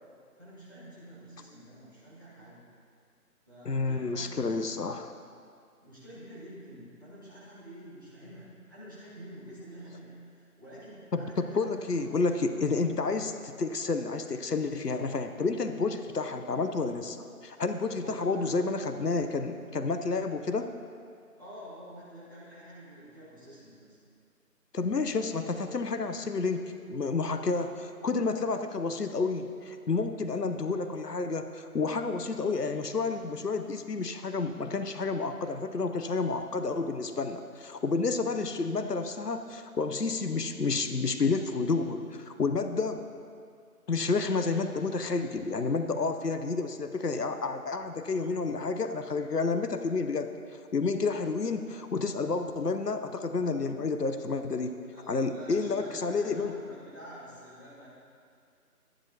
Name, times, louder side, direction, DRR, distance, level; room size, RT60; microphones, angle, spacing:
voice 1, 0.4-2.6 3.5-4.8 5.8-12.1 12.5-12.7 17.9-18.7 21.4-24.0 54.9-57.9, equal, 15° right, -13 dB, 1.7 m, -48 dB
voice 2, 3.6-5.1 11.1-17.2 17.4-20.7 24.7-43.0 43.9-50.3 50.7-54.8 55.1-56.5, left 4 dB, 80° left, 8 dB, 0.8 m, -30 dB
13.0 x 11.0 x 2.9 m, 2.3 s
figure-of-eight pair, 165°, 47 cm